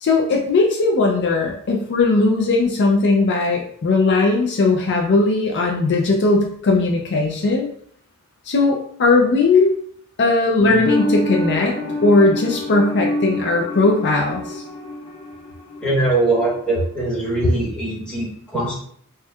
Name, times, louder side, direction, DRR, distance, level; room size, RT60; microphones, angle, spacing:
voice 1, 0.0-7.7 8.5-9.8 10.2-14.6, left 3 dB, 50° left, 0 dB, 0.4 m, -18 dB
sound 1, 10.6-16.1 16.4-16.5, left 1 dB, 80° left, 0.9 m, -26 dB
voice 2, 15.8-18.8, right 2 dB, 5° left, -7 dB, 1.2 m, -22 dB
4.2 x 2.3 x 2.3 m, 0.63 s
head